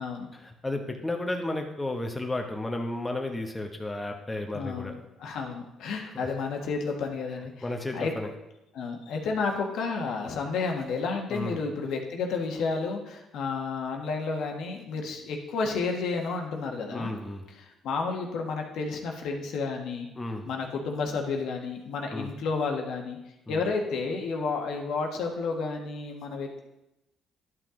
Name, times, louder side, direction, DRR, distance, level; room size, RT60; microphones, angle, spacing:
voice 1, 0.3-5.0 6.1-6.3 7.6-8.3 11.3-11.6 16.9-17.4 20.1-20.5 22.1-22.3 23.5-23.6, left 2 dB, 15° left, 3 dB, 1.1 m, -33 dB
voice 2, 4.5-4.9 5.2-7.5 7.9-8.1 8.7-17.1 17.6-20.1 20.4-23.2 23.5-26.6, left 4 dB, 75° left, 2 dB, 1.3 m, -31 dB
11.0 x 5.8 x 3.8 m, 0.91 s
cardioid pair, 95°, 0 cm